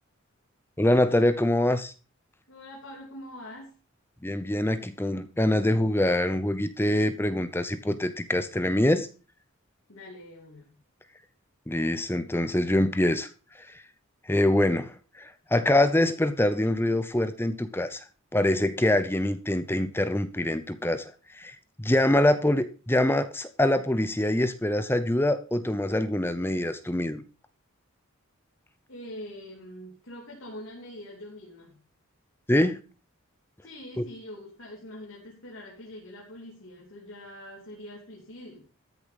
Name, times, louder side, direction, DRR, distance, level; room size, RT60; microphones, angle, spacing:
voice 1, 0.8-1.9 4.2-9.1 11.7-13.3 13.6-13.8 14.3-18.0 18.3-27.2 32.5-32.8 34.0-34.1, left 1 dB, 10° left, 11 dB, 0.7 m, -25 dB
voice 2, 2.5-3.7 9.9-10.8 28.9-31.8 33.6-38.7, left 1 dB, 65° left, -3 dB, 3.1 m, -44 dB
13.5 x 6.9 x 5.2 m, 0.35 s
head